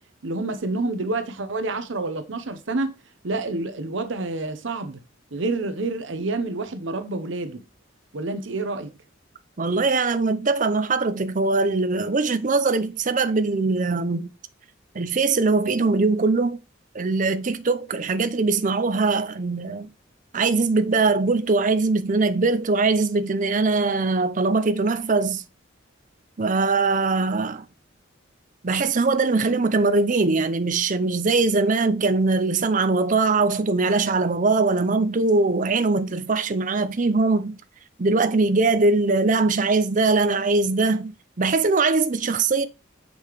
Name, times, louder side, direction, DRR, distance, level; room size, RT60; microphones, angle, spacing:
voice 1, 0.2-3.0 3.2-5.0 5.3-7.6 8.1-8.9, right 2 dB, 70° right, 0.8 m, -28 dB
voice 2, 9.6-14.3 14.9-16.6 16.9-19.9 20.3-25.4 26.4-27.6 28.6-37.6 38.0-42.7, right 3 dB, 40° right, 0.6 m, -21 dB
6.6 x 5.3 x 3.1 m
head